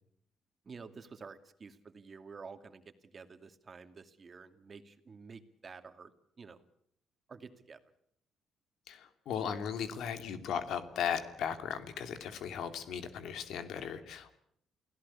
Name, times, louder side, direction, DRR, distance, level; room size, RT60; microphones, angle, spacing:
voice 1, 0.6-6.1 6.4-6.6 7.3-7.8, right 5 dB, 40° right, 9 dB, 2.4 m, -50 dB
voice 2, 8.9-14.4, left 8 dB, 80° left, 9 dB, 2.7 m, -37 dB
29.0 x 17.0 x 8.6 m, 0.69 s
cardioid pair, 90°, 0 cm